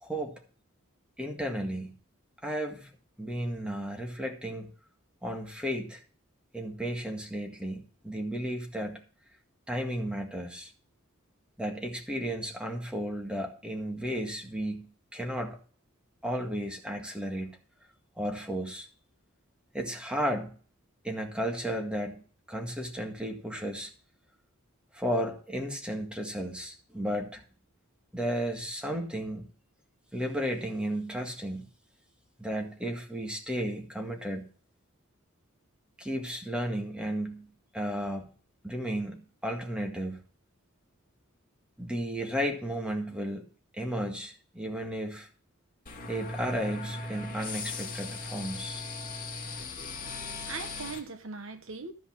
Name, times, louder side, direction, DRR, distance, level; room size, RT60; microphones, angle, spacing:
voice 1, 0.0-0.4 1.2-1.9 2.4-2.9 3.2-4.7 5.2-6.0 6.5-9.0 9.7-10.7 11.6-15.6 16.2-17.6 18.1-18.9 19.7-20.6 21.0-23.9 24.9-27.4 28.1-29.5 30.1-31.7 32.4-34.4 36.0-38.3 38.6-40.2 41.8-43.5 43.7-45.3 46.1-48.8, equal, 5° right, 1.8 m, -34 dB
sound 1, 45.9-51.0, left 3 dB, 45° left, 2.5 m, -38 dB
voice 2, 49.8-51.9, right 4 dB, 70° right, 1.2 m, -41 dB
13.0 x 5.6 x 7.3 m
head